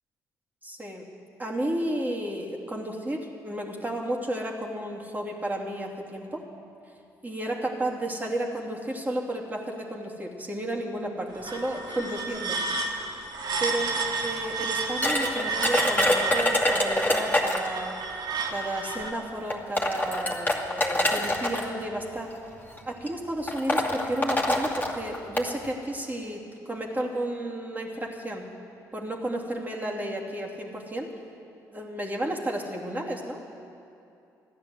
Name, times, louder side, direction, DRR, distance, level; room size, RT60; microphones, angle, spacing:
voice 1, 0.6-1.0 1.4-6.4 7.2-12.6 13.6-17.9 18.5-22.3 22.8-28.4 28.9-31.1 31.7-33.4, right 1 dB, 20° right, -1 dB, 2.7 m, -32 dB
sound 1, 11.3-19.1, right 4 dB, 55° right, 1.5 m, -31 dB
sound 2, 15.0-17.8 18.9-19.0 19.5-21.6 22.6-22.8 23.1-23.2 23.5-25.5, left 1 dB, 20° left, 2.5 m, -25 dB
14.5 x 10.0 x 7.9 m, 2.7 s
hypercardioid pair, 50°, 9 cm